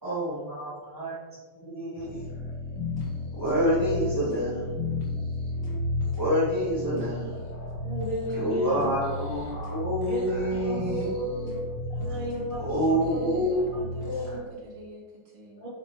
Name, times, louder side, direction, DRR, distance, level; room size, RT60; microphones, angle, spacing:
voice 1, 0.0-2.3 3.3-4.7 6.1-7.4 8.3-11.1 12.6-13.9, equal, 10° right, -11 dB, 1.3 m, -28 dB
sound 1, 2.0-14.5, left 2 dB, 75° left, 2.4 m, -34 dB
sound 2, 2.8-3.1 3.5-3.7 4.0-4.5 4.9-5.8 6.1-6.3 6.6-7.2 7.5-8.5 8.8-9.0 9.3-9.8 10.1-11.2 11.4-11.7 12.0-13.5, left 2 dB, 45° left, 0.8 m, -51 dB
voice 2, 3.5-4.1 5.5-5.9 7.8-8.9 10.1-11.5 12.0-12.6 12.9-13.3 14.0-14.5 15.6-15.7, equal, 25° left, -8 dB, 1.7 m, -34 dB
voice 3, 10.5-10.8 11.1-11.6 11.9-15.6, equal, 65° right, -5 dB, 2.7 m, -48 dB
8.6 x 5.2 x 3.0 m, 1.4 s
omnidirectional pair, 2.4 m